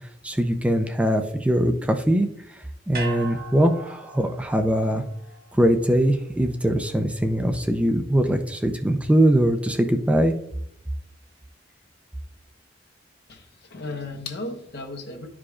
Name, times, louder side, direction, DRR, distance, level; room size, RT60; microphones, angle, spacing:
voice 1, 0.2-2.6 2.9-5.0 5.5-10.4, right 1 dB, 5° right, 5 dB, 0.5 m, -22 dB
sound 1, 2.9-7.3 7.6-7.7, right 3 dB, 55° right, 1.4 m, -40 dB
voice 2, 13.3-15.3, left 2 dB, 60° left, 3 dB, 1.1 m, -35 dB
11.5 x 4.9 x 2.4 m, 0.75 s
head